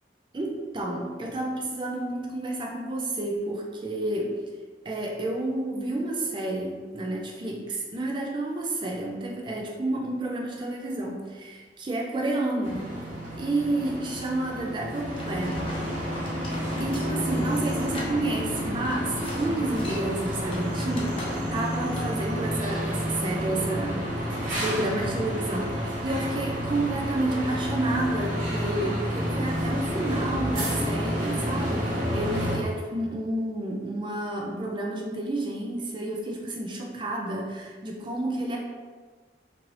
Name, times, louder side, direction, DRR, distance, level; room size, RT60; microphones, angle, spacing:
voice 1, 0.3-4.4 4.8-12.9 13.4-15.7 16.2-16.4 16.8-21.2 21.5-38.6, right 2 dB, 25° right, 0 dB, 0.4 m, -30 dB
sound 1, 12.6-32.6, equal, 45° right, 0.9 m, -30 dB
sound 2, 15.2-21.7 21.9-22.2, left 1 dB, 30° left, 0.5 m, -42 dB
2.8 x 2.6 x 3.1 m, 1.4 s
head